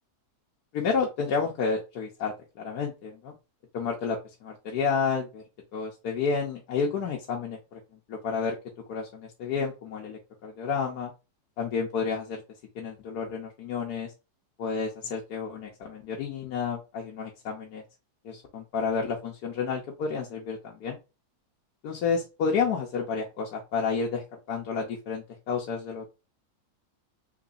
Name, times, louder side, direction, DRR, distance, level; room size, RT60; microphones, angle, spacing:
voice 1, 0.7-3.3 3.7-5.4 5.7-7.8 8.1-8.5 8.9-11.1 11.6-12.4 12.8-14.1 14.6-17.8 18.2-21.0 21.8-24.2 24.5-26.1, left 5 dB, 90° left, -1 dB, 1.3 m, -30 dB
3.9 x 3.0 x 2.5 m, 0.28 s
omnidirectional pair, 1.7 m